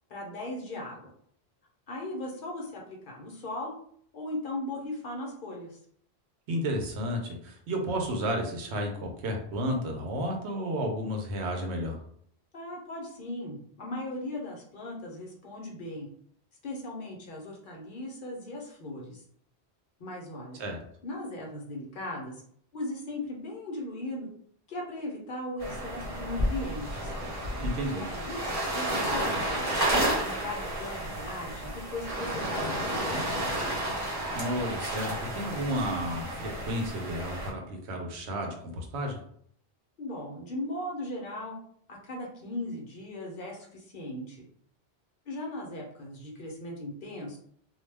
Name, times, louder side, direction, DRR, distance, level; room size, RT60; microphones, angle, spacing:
voice 1, 0.1-1.1 1.9-3.7 4.1-5.8 12.5-16.1 16.6-19.2 20.0-20.6 21.0-22.4 22.7-24.3 24.7-27.1 27.9-28.4 28.7-33.8 40.0-41.6 41.9-44.4 45.3-47.4, left 1 dB, 55° left, -1 dB, 0.8 m, -38 dB
voice 2, 6.5-12.0 20.6-20.8 27.5-28.0 34.3-39.2, equal, 85° right, 2 dB, 0.9 m, -32 dB
sound 1, 25.6-37.5, right 1 dB, 35° right, 1.0 m, -31 dB
2.3 x 2.2 x 3.2 m, 0.63 s
omnidirectional pair, 1.1 m